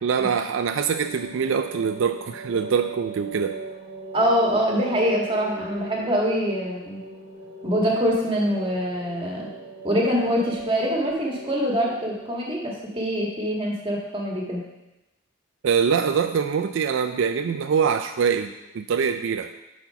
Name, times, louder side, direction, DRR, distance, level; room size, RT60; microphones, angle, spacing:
voice 1, 0.0-3.6 15.6-19.5, right 6 dB, 75° right, 7 dB, 0.4 m, -24 dB
sound 1, 0.9-13.1, right 4 dB, 50° left, 3.0 m, -40 dB
voice 2, 4.1-7.0 7.6-9.5 9.8-14.6, equal, 25° right, -2 dB, 1.7 m, -24 dB
9.7 x 4.3 x 5.7 m, 1.0 s
head